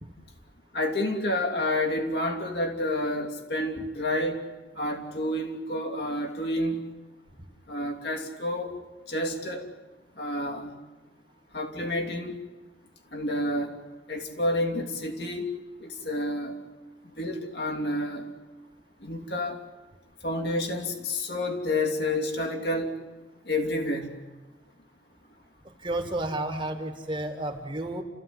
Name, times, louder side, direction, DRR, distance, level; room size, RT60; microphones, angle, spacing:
voice 1, 0.7-4.4 4.7-6.8 7.7-8.8 9.1-9.7 10.2-10.8 11.5-12.4 13.1-13.7 14.1-15.5 15.8-16.6 17.2-18.3 19.0-19.6 20.2-22.9 23.5-24.1, left 1 dB, 60° left, 2 dB, 3.0 m, -29 dB
voice 2, 25.7-28.0, right 1 dB, 25° right, 7 dB, 1.8 m, -32 dB
30.0 x 14.5 x 9.8 m, 1.2 s
head